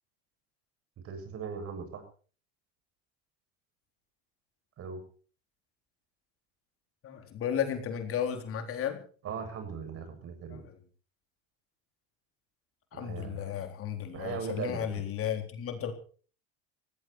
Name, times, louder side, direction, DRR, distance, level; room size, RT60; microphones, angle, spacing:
voice 1, 1.0-2.0 4.8-5.0 9.2-10.6 12.9-13.5 14.1-15.0, right 6 dB, 45° right, 7 dB, 7.8 m, -39 dB
voice 2, 7.0-9.0 10.5-10.6 12.9-15.9, left 9 dB, 45° left, 5 dB, 4.0 m, -34 dB
18.0 x 17.0 x 4.6 m, 0.41 s
hypercardioid pair, 90°, 31 cm